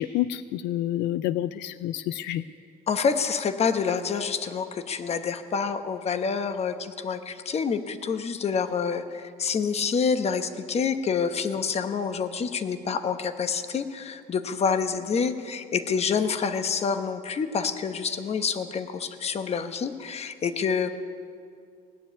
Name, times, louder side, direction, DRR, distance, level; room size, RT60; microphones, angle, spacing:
voice 1, 0.0-2.4, left 13 dB, 90° left, 14 dB, 0.4 m, -28 dB
voice 2, 2.9-20.9, left 6 dB, 40° left, 10 dB, 0.9 m, -27 dB
17.5 x 7.2 x 9.9 m, 2.3 s
cardioid pair, 110°, 17 cm